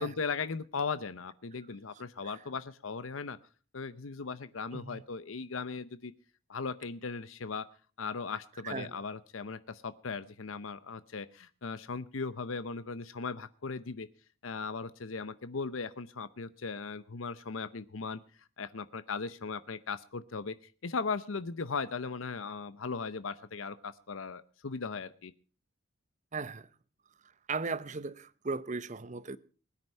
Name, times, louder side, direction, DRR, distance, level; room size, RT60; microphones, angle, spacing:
voice 1, 0.0-3.4 3.7-6.1 6.5-7.7 8.0-14.1 14.4-18.2 18.6-20.5 20.8-25.3, left 4 dB, 80° left, 0.7 m, -38 dB
voice 2, 4.7-5.0 8.6-9.0 26.3-26.7 27.5-29.4, right 4 dB, 35° right, 0.8 m, -37 dB
21.0 x 9.8 x 5.5 m
head